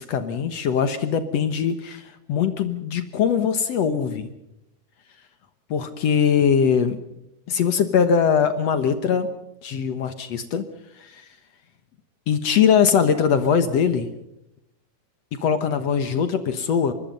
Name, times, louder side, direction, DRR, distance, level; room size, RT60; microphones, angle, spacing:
voice 1, 0.0-4.3 5.7-7.0 7.5-9.3 9.6-10.6 11.0-11.2 12.3-14.1 15.4-16.9, left 7 dB, 70° left, 10 dB, 1.6 m, -21 dB
25.0 x 21.5 x 5.4 m, 0.83 s
omnidirectional pair, 4.6 m